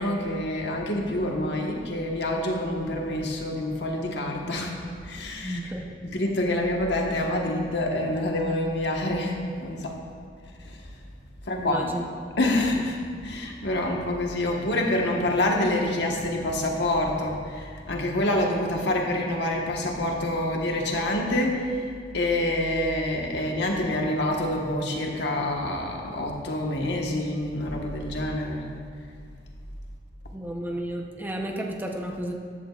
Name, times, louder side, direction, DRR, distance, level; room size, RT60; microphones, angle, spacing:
voice 1, 0.0-4.8 5.0-5.6 6.0-10.0 10.6-10.9 11.5-11.9 12.4-21.8 22.1-28.8, left 1 dB, 70° left, 0 dB, 1.4 m, -27 dB
voice 2, 5.4-6.0 11.5-12.0 30.3-32.3, right 1 dB, 10° right, 0 dB, 0.8 m, -32 dB
14.5 x 11.0 x 2.5 m, 2.1 s
head